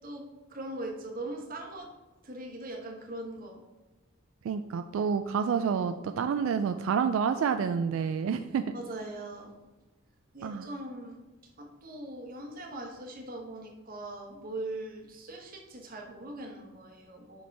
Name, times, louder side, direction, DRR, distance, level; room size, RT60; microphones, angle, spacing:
voice 1, 0.5-1.9 2.2-3.6 8.7-9.5 10.3-11.2 11.6-17.5, right 2 dB, 45° right, 1 dB, 1.2 m, -40 dB
voice 2, 4.4-8.6 10.4-10.7, right 6 dB, 85° right, 9 dB, 0.3 m, -28 dB
5.4 x 5.0 x 4.5 m, 1.1 s
head